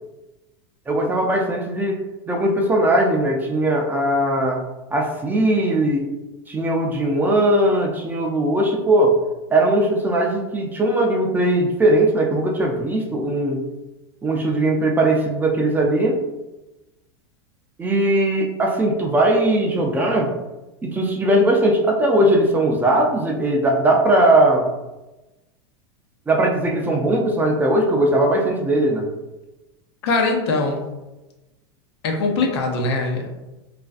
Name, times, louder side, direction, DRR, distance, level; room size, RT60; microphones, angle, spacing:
voice 1, 0.9-2.0 2.3-4.6 4.9-6.1 6.5-9.1 9.5-13.6 14.2-16.2 17.8-20.3 20.8-24.6 26.3-29.1, right 1 dB, 15° right, 0 dB, 0.4 m, -19 dB
voice 2, 30.0-30.9 32.0-33.3, left 3 dB, 70° left, 2 dB, 0.6 m, -21 dB
2.4 x 2.2 x 2.4 m, 1.0 s
hypercardioid pair, 115°, 14 cm